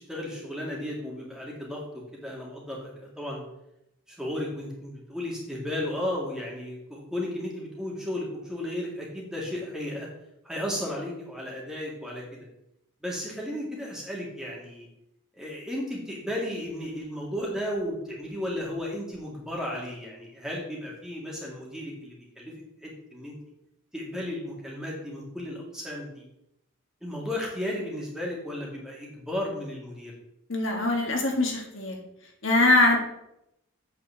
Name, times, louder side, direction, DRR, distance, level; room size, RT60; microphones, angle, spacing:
voice 1, 0.0-3.4 4.1-10.1 10.4-12.5 13.0-14.9 15.3-22.5 22.8-23.3 23.9-26.2 27.0-30.1, left 1 dB, 5° right, -3 dB, 2.2 m, -34 dB
voice 2, 30.5-31.9 32.4-33.0, left 2 dB, 60° left, 1 dB, 1.9 m, -22 dB
8.6 x 4.7 x 7.2 m, 0.81 s
head